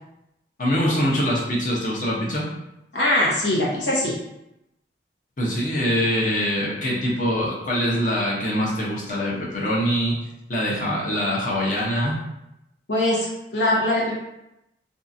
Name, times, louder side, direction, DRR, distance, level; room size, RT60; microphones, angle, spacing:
voice 1, 0.6-2.4 5.4-10.2 10.5-12.2, equal, 45° left, -5 dB, 0.7 m, -23 dB
voice 2, 2.9-4.1 12.9-13.3 13.5-14.2, left 1 dB, 80° left, -6 dB, 1.0 m, -21 dB
2.7 x 2.4 x 2.6 m, 0.87 s
head